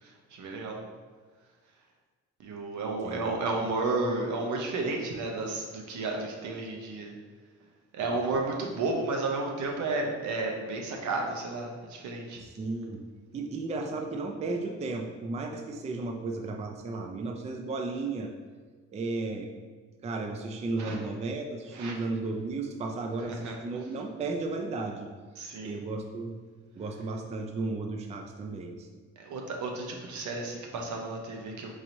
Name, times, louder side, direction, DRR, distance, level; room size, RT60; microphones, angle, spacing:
voice 1, 0.0-0.8 2.4-7.1 7.9-12.4 20.8-21.0 21.7-21.9 23.4-23.5 25.4-25.8 29.2-31.7, right 3 dB, 75° right, 1 dB, 0.8 m, -32 dB
voice 2, 3.0-3.3 8.3-8.5 12.4-13.0 13.3-18.3 18.9-19.5 20.0-25.1 25.6-26.4 26.8-28.9, right 3 dB, 25° right, 3 dB, 0.3 m, -34 dB
4.7 x 2.9 x 2.6 m, 1.5 s
cardioid pair, 90°, 30 cm